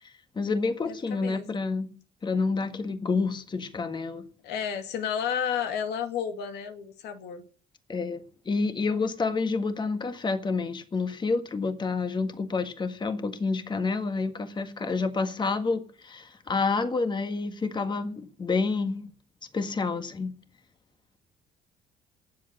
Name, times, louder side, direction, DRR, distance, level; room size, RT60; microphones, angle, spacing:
voice 1, 0.0-1.9 2.2-4.2 7.9-19.1 19.5-20.3, left 4 dB, 25° left, 1.7 m, -29 dB
voice 2, 0.8-1.6 4.4-7.4, left 8 dB, 80° left, 2.3 m, -32 dB
20.0 x 7.7 x 6.7 m
cardioid pair, 110°, 17 cm